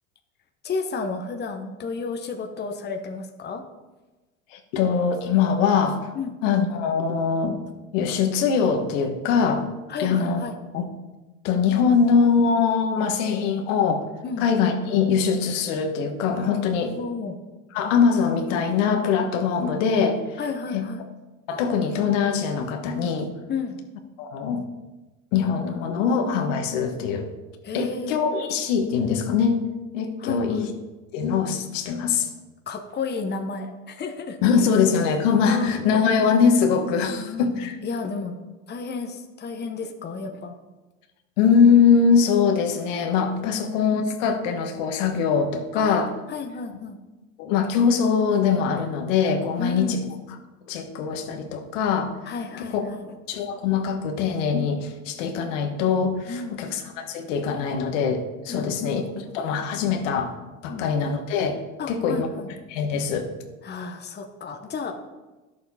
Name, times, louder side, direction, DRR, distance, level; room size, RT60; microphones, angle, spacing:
voice 1, 0.6-3.6 6.1-6.4 9.9-10.6 14.2-14.5 16.9-17.4 20.4-21.0 23.5-23.8 27.6-28.2 30.2-30.7 32.7-34.4 35.5-35.9 37.1-38.3 38.7-40.6 45.7-47.0 49.6-50.0 52.2-53.2 56.3-56.6 58.5-59.3 60.7-60.9 61.8-62.5 63.6-64.9, left 4 dB, 25° left, 4 dB, 1.1 m, -32 dB
voice 2, 4.5-6.0 6.4-7.6 7.9-9.7 10.0-10.4 10.7-10.9 11.4-14.0 14.4-16.9 17.7-20.2 20.7-20.8 21.5-23.3 24.2-24.6 25.3-27.3 27.7-29.6 29.9-30.7 31.1-32.3 34.4-37.7 41.4-46.1 47.4-50.0 50.7-52.1 52.7-52.8 53.3-59.0 59.3-60.3 60.6-61.6 61.9-62.3 62.7-63.3, left 6 dB, 75° left, 4 dB, 1.5 m, -22 dB
11.0 x 6.8 x 4.2 m, 1.1 s
supercardioid pair, 100°, 38 cm